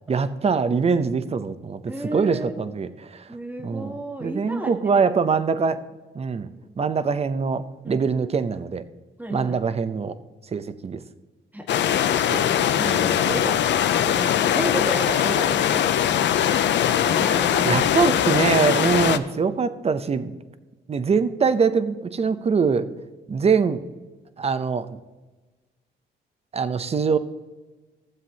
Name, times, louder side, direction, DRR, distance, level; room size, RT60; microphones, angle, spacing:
voice 1, 0.1-3.3 3.6-5.8 6.1-6.5 6.8-8.8 9.3-10.2 10.5-11.0 12.2-12.4 13.3-13.4 17.6-20.3 20.9-22.9 23.3-23.8 24.4-25.0 26.5-27.2, right 5 dB, 30° right, 12 dB, 0.7 m, -23 dB
voice 2, 1.9-2.5 3.3-5.0 7.8-8.0 9.2-9.6 11.5-12.0 12.3-13.6 14.1-15.8 17.0-17.8 18.1-18.2, right 1 dB, 10° right, 2 dB, 1.6 m, -32 dB
sound 1, 11.7-19.2, left 10 dB, 65° left, 0.6 m, -21 dB
15.5 x 7.4 x 2.9 m, 1.2 s
cardioid pair, 90°, 20 cm